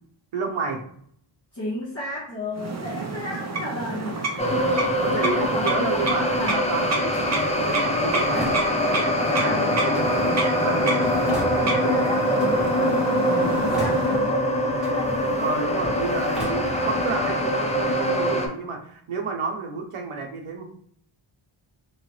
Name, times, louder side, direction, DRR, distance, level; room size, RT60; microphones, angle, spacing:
voice 1, 0.3-0.8 5.0-8.5 9.3-12.1 13.6-13.9 15.4-20.6, right 4 dB, 80° right, 1 dB, 0.8 m, -30 dB
voice 2, 1.5-4.2 5.4-6.6 8.5-9.8 11.8-14.4 14.9-15.5, left 2 dB, 30° left, -10 dB, 1.2 m, -34 dB
sound 1, 2.5-14.4, right 3 dB, 35° right, 0.6 m, -30 dB
sound 2, 4.4-18.5, equal, 15° left, 0.4 m, -23 dB
Drawer open or close, 7.1-9.2 9.9-12.0 12.4-13.2 13.4-14.4 14.8-17.2, left 1 dB, ahead, 1.2 m, -37 dB
3.0 x 2.7 x 3.1 m, 0.64 s
wide cardioid pair, 135°, 50 cm